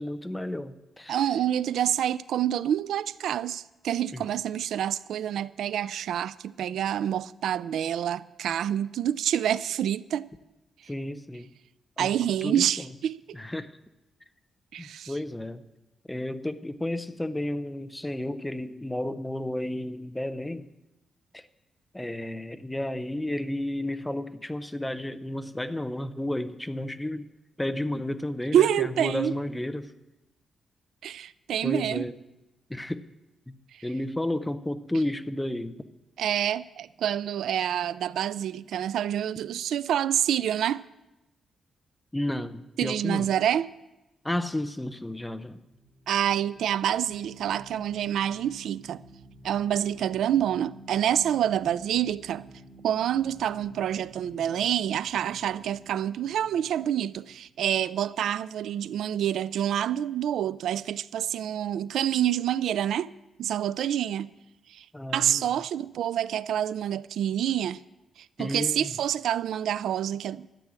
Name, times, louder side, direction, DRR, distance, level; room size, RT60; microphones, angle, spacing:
voice 1, 0.0-1.2 4.1-4.2 10.9-11.5 12.0-12.1 12.4-12.9 13.3-13.7 14.8-15.6 16.1-20.7 21.3-21.4 21.9-27.3 27.6-29.9 31.6-32.2 32.7-33.0 33.5-33.6 33.8-35.8 42.1-43.3 44.2-45.6 64.9-65.5 68.4-68.9, left 1 dB, 5° left, 0.5 m, -32 dB
voice 2, 1.1-10.3 12.0-13.4 14.7-15.1 28.5-29.3 31.0-32.0 33.7-33.8 36.2-40.8 42.8-43.7 46.1-49.0 49.4-52.4 52.8-63.1 63.4-64.3 64.7-64.9 65.1-67.8 68.2-70.5, right 10 dB, 90° right, 0.4 m, -27 dB
sound 1, 45.4-58.2, right 1 dB, 65° right, 3.4 m, -51 dB
13.0 x 7.6 x 9.5 m
wide cardioid pair, 170°, 0 cm